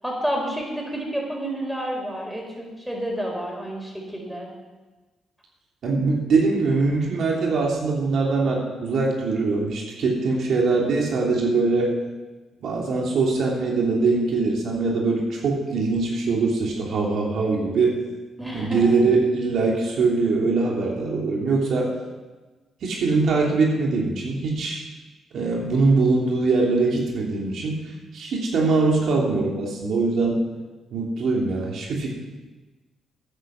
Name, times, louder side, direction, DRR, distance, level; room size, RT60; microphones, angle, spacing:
voice 1, 0.0-4.5 18.4-19.0, right 1 dB, 5° right, -1 dB, 5.0 m, -29 dB
voice 2, 5.8-11.9 12.6-18.0 18.5-21.9 22.8-24.8 25.3-27.8 28.1-30.4 30.9-32.1, right 3 dB, 70° right, -2 dB, 3.1 m, -22 dB
13.5 x 10.0 x 5.9 m, 1.2 s
cardioid pair, 70°, 0 cm